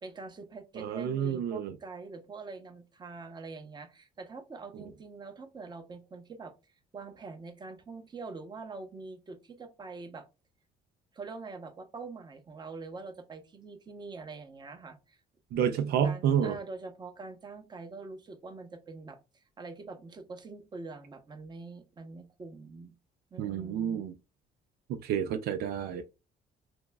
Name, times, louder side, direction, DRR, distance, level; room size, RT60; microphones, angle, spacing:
voice 1, 0.0-6.5 6.9-10.3 11.1-15.2 16.0-23.0 23.3-24.0, right 4 dB, 25° right, 0.8 m, -44 dB
voice 2, 0.8-1.7 15.5-16.5 23.4-24.1 25.0-26.0, right 8 dB, 70° right, 0.4 m, -29 dB
5.9 x 2.0 x 2.3 m
cardioid pair, 110°, 17 cm